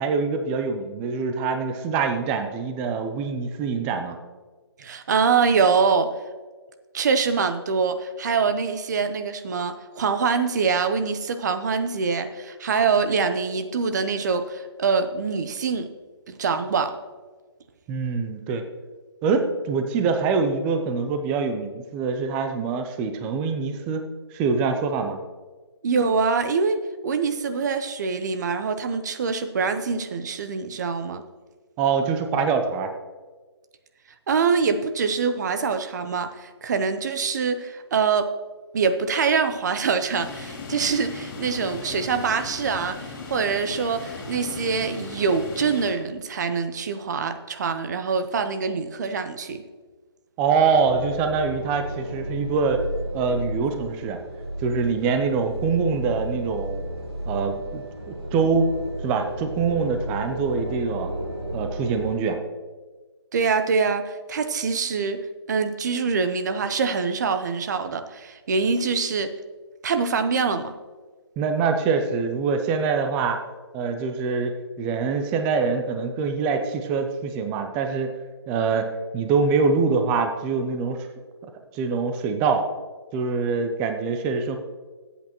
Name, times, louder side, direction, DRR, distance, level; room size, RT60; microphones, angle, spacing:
voice 1, 0.0-4.2 17.9-18.6 19.2-25.2 31.8-32.9 50.4-52.8 53.1-54.2 54.6-56.8 57.3-58.7 59.0-61.1 61.5-62.4 71.4-73.4 73.7-78.1 78.5-81.0 81.7-82.7 83.1-84.6, right 5 dB, 10° right, 6 dB, 0.3 m, -24 dB
voice 2, 4.8-6.1 6.9-15.9 16.3-17.0 25.8-31.2 34.3-38.3 38.7-49.6 63.3-69.3 69.8-70.7, right 5 dB, 40° right, 10 dB, 0.8 m, -24 dB
sound 1, 40.1-45.9, left 4 dB, 45° left, 2.7 m, -37 dB
sound 2, 50.7-62.2, right 1 dB, 65° right, 3.1 m, -33 dB
17.5 x 8.3 x 3.0 m, 1.4 s
hypercardioid pair, 160°, 14 cm